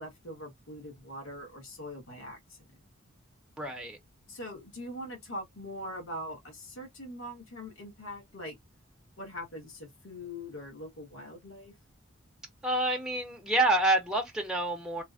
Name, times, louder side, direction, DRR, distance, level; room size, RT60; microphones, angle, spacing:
voice 1, 0.0-2.7 4.3-8.6 9.2-11.7, left 1 dB, 70° left, 1.3 m, -42 dB
voice 2, 3.6-4.0 12.6-15.0, right 1 dB, 5° right, 0.5 m, -28 dB
3.2 x 2.0 x 2.3 m
head